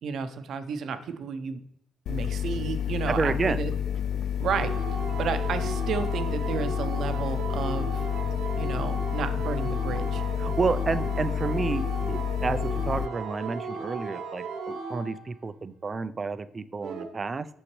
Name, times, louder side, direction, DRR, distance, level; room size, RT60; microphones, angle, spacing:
voice 1, 0.0-1.6 2.1-3.7 4.4-4.7 5.2-8.1 8.6-10.2, right 6 dB, 70° right, 9 dB, 0.7 m, -32 dB
sound 1, 2.1-13.1, left 8 dB, 70° left, 0.3 m, -29 dB
voice 2, 3.1-3.6 10.4-17.5, right 4 dB, 35° right, 13 dB, 0.4 m, -30 dB
sound 2, 4.5-15.3 16.8-17.1, right 4 dB, 90° right, 1.0 m, -36 dB
6.3 x 5.9 x 3.1 m, 0.76 s
cardioid pair, 90°, 0 cm